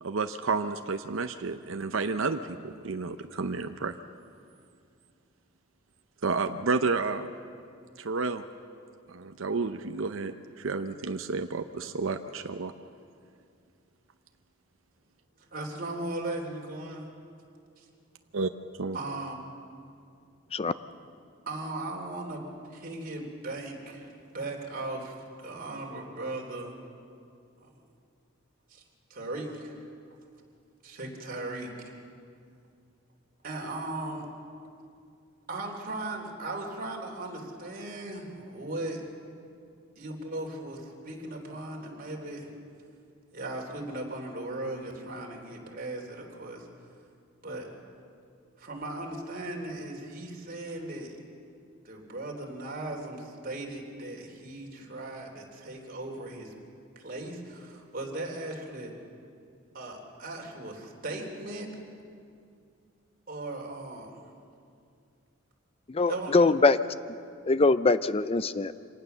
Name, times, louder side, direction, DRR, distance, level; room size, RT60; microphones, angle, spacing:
voice 1, 0.0-4.0 6.2-7.3 8.0-8.4 9.1-12.7 18.3-18.5 18.8-19.0, right 4 dB, 75° right, 7 dB, 0.7 m, -31 dB
voice 2, 15.5-17.0 17.8-17.9 18.9-19.4 21.4-26.7 27.6-27.7 28.7-28.8 29.1-29.8 30.8-32.0 33.4-34.3 35.5-39.0 40.0-42.5 43.3-46.7 47.4-47.7 48.6-51.2 51.8-56.5 56.9-58.9 59.7-61.7 63.3-64.2 66.1-66.5, right 2 dB, 45° right, 1 dB, 3.4 m, -37 dB
voice 3, 65.9-66.8 67.4-68.8, left 3 dB, 30° left, 14 dB, 0.5 m, -23 dB
25.5 x 18.5 x 6.9 m, 2.4 s
head